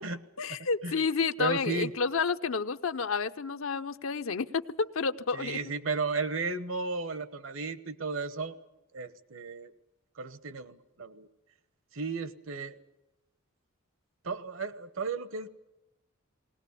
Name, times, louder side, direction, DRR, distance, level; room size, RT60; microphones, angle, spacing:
voice 1, 0.4-5.6, left 5 dB, 75° left, 9 dB, 0.7 m, -30 dB
voice 2, 1.4-1.9 5.3-8.6 8.9-9.7 10.2-11.3 11.9-12.8 14.2-15.5, right 4 dB, 70° right, 13 dB, 1.2 m, -34 dB
20.0 x 19.5 x 8.3 m, 0.95 s
head